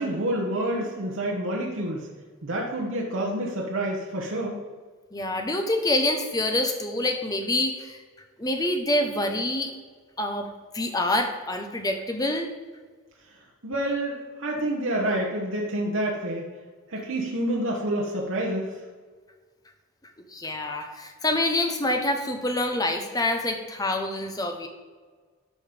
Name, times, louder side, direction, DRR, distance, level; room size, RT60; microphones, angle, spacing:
voice 1, 0.0-2.1 2.4-4.6 13.6-16.4 16.9-18.7, right 1 dB, 70° right, -2 dB, 1.2 m, -28 dB
voice 2, 5.1-8.0 8.4-9.7 10.2-12.5 20.3-24.7, left 1 dB, 15° left, 4 dB, 0.9 m, -26 dB
12.0 x 5.4 x 5.1 m, 1.5 s
head